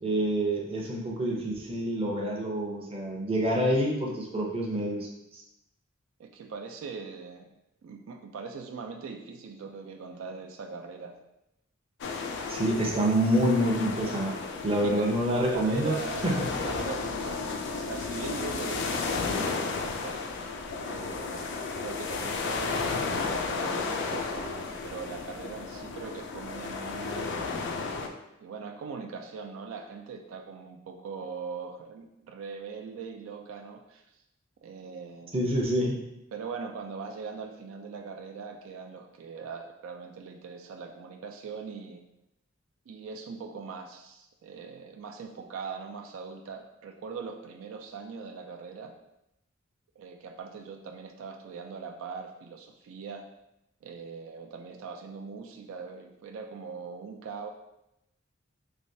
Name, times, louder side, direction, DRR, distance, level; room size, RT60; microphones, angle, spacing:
voice 1, 0.0-5.1 5.3-5.4 12.5-15.9 16.2-16.4 35.3-36.0, right 1 dB, 30° right, -1 dB, 0.6 m, -27 dB
voice 2, 6.2-7.5 7.8-11.2 14.8-20.2 20.9-27.7 28.4-34.2 34.6-35.3 36.3-42.0 42.9-48.9 50.0-53.2 53.8-57.5, right 5 dB, 80° right, 4 dB, 0.3 m, -41 dB
sound 1, 12.0-28.1, left 4 dB, 60° left, 0.4 m, -33 dB
3.3 x 3.1 x 2.7 m, 0.87 s
head